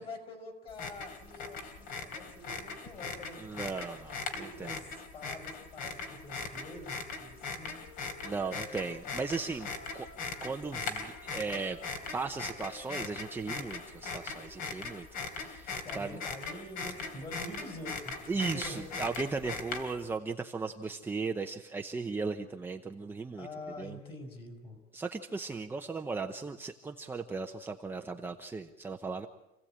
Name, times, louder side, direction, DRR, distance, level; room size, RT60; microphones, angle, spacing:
voice 1, 0.0-3.6 3.9-4.0 4.3-7.8 15.7-18.8 23.4-24.8, left 1 dB, 30° left, 5 dB, 4.8 m, -46 dB
sound 1, 0.7-20.1, left 4 dB, 50° left, 3.2 m, -40 dB
voice 2, 3.4-4.8 5.8-5.9 8.0-9.7 9.9-10.1 10.4-11.8 12.1-16.2 18.3-23.5 23.8-24.0 24.9-29.3, right 4 dB, 10° right, 4 dB, 0.8 m, -37 dB
Wind instrument woodwind instrument, 6.0-10.5 10.8-15.3, left 4 dB, 65° left, 2.4 m, -54 dB
27.5 x 16.5 x 8.7 m, 0.97 s
cardioid pair, 165°, 19 cm